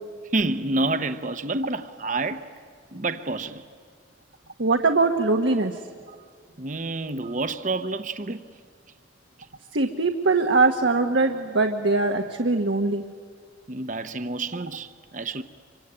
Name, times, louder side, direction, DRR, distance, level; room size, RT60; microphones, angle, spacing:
voice 1, 0.3-2.5 2.9-3.6 6.6-8.5 13.7-15.4, right 2 dB, 40° right, 0.8 m, -28 dB
voice 2, 4.6-5.7 9.7-13.0, right 3 dB, 70° right, 1.3 m, -22 dB
27.0 x 24.5 x 8.9 m
head